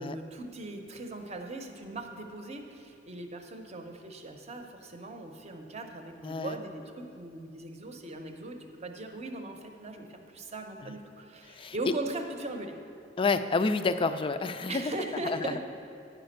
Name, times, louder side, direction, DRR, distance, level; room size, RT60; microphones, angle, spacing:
voice 1, 0.0-12.7 14.7-15.6, right 2 dB, 35° right, 4 dB, 0.7 m, -39 dB
voice 2, 6.2-6.6 10.8-11.0 11.5-11.9 13.2-14.8 15.3-15.5, left 4 dB, 30° left, 11 dB, 0.3 m, -29 dB
10.5 x 5.1 x 6.6 m, 2.5 s
head